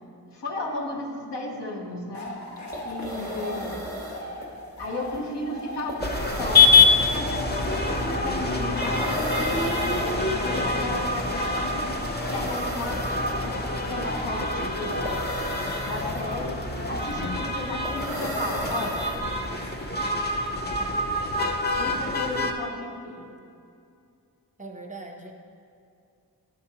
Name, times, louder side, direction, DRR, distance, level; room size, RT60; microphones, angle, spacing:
voice 1, 0.3-2.4 2.8-3.8 4.8-13.6 13.9-15.2 15.8-19.0 19.4-19.5 21.7-23.3, left 2 dB, 80° left, -4 dB, 1.3 m, -34 dB
sound 1, 2.1-20.6, left 1 dB, 45° left, 1.0 m, -39 dB
sound 2, 2.3-2.4 2.6-19.6, equal, 10° left, 1.0 m, -37 dB
sound 3, 6.0-22.5, left 3 dB, 25° left, 0.6 m, -25 dB
voice 2, 21.8-22.1 24.6-25.3, right 2 dB, 20° right, 1 dB, 0.7 m, -42 dB
10.0 x 6.7 x 2.9 m, 2.4 s
wide cardioid pair, 70°, 41 cm